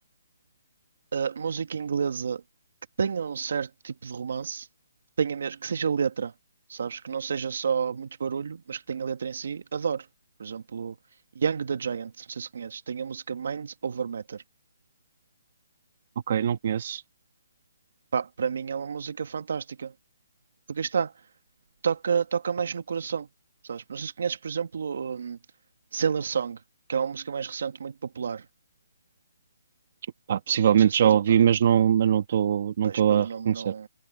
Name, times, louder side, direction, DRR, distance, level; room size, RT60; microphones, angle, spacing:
voice 1, 1.1-2.4 3.0-4.7 5.2-6.3 6.7-10.1 10.4-10.9 11.3-14.4 18.1-19.9 20.7-21.3 21.8-23.3 23.6-25.4 25.9-26.6 26.9-28.5 30.8-31.4 32.8-33.9, right 6 dB, 60° right, 1.1 m, -30 dB
voice 2, 16.3-17.0 30.3-33.7, right 9 dB, 45° right, 1.5 m, -22 dB
hypercardioid pair, 170°, 0 cm